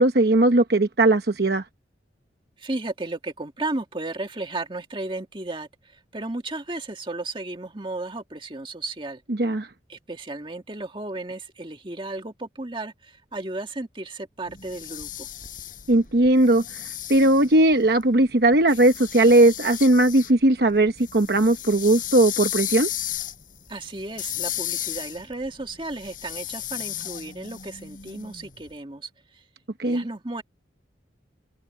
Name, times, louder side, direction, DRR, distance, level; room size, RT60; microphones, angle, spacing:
voice 1, 0.0-1.6 9.3-9.7 15.9-16.6 17.1-22.9 29.8-30.0, right 1 dB, 60° right, 1.0 m, -18 dB
voice 2, 2.6-9.2 9.9-15.3 23.7-29.4 29.8-30.4, right 2 dB, 25° right, 1.8 m, -34 dB
sound 1, 14.5-18.0 18.7-20.3 20.7-28.6, left 12 dB, 45° left, 5.3 m, -34 dB
head